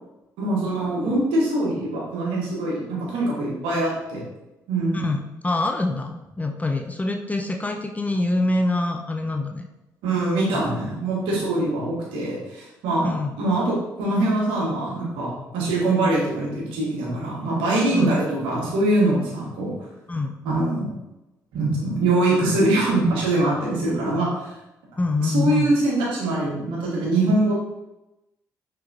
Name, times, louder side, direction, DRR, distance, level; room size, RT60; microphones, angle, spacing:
voice 1, 0.4-4.2 4.7-5.1 10.0-19.7 20.4-20.9 21.5-24.5 25.2-27.5, right 2 dB, 65° right, -5 dB, 1.5 m, -23 dB
voice 2, 4.9-9.7 10.5-10.6 13.0-13.3 17.9-18.1 20.1-20.3 25.0-25.8, left 2 dB, 15° left, 4 dB, 0.5 m, -25 dB
5.5 x 3.3 x 2.6 m, 0.95 s
figure-of-eight pair, 45°, 9 cm